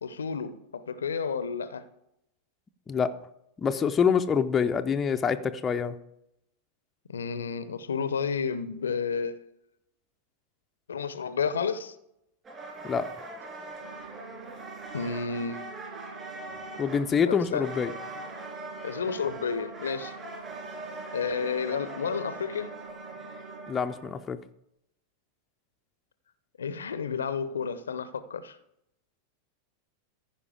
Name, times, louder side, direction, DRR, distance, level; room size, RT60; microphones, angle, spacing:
voice 1, 0.0-1.9 7.1-9.5 10.9-12.0 14.9-15.8 17.2-17.7 18.8-20.1 21.1-22.7 26.6-28.6, left 6 dB, 70° left, 0.6 m, -31 dB
voice 2, 3.6-5.9 12.8-13.0 16.8-17.9 23.7-24.4, left 6 dB, 20° left, 0.5 m, -26 dB
sound 1, 12.4-24.2, right 2 dB, 25° right, 3.0 m, -42 dB
sound 2, 13.8-23.8, right 7 dB, 85° right, 0.8 m, -49 dB
14.5 x 5.1 x 5.0 m
figure-of-eight pair, 90°, 0 cm